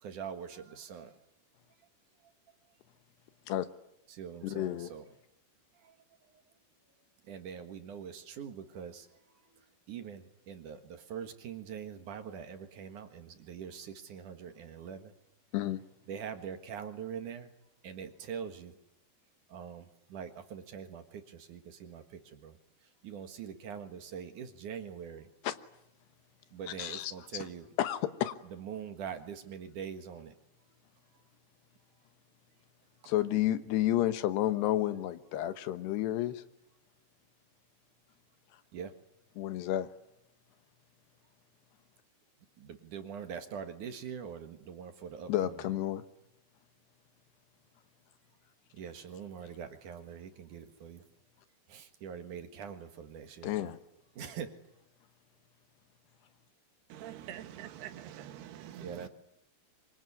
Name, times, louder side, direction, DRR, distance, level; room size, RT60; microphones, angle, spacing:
voice 1, 0.0-1.2 4.1-5.1 5.8-5.9 7.3-9.1 9.9-15.1 16.1-17.5 17.8-18.8 19.5-22.6 23.0-25.3 26.5-27.7 28.5-30.3 33.0-33.1 38.7-38.9 42.6-45.7 48.7-51.0 51.7-53.7 54.2-54.5 58.8-59.1, right 7 dB, 60° right, 2.8 m, -43 dB
voice 2, 4.4-4.9 15.5-15.8 25.4-25.5 26.8-27.4 27.8-28.3 33.1-36.4 39.4-39.9 45.3-46.0 53.4-53.8, left 13 dB, 85° left, 3.3 m, -31 dB
voice 3, 56.9-59.1, right 11 dB, 75° right, 3.3 m, -45 dB
25.0 x 24.5 x 9.8 m
omnidirectional pair, 4.7 m